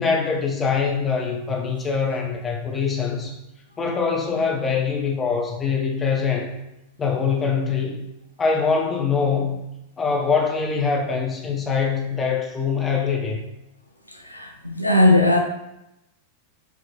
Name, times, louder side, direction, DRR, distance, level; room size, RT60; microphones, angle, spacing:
voice 1, 0.0-3.4 3.8-6.5 7.0-8.0 8.4-9.6 10.0-13.4, left 5 dB, 20° left, 0 dB, 0.8 m, -23 dB
voice 2, 14.1-15.4, left 2 dB, 90° left, 3 dB, 0.4 m, -18 dB
4.8 x 2.9 x 2.6 m, 0.90 s
figure-of-eight pair, 90°, 0 cm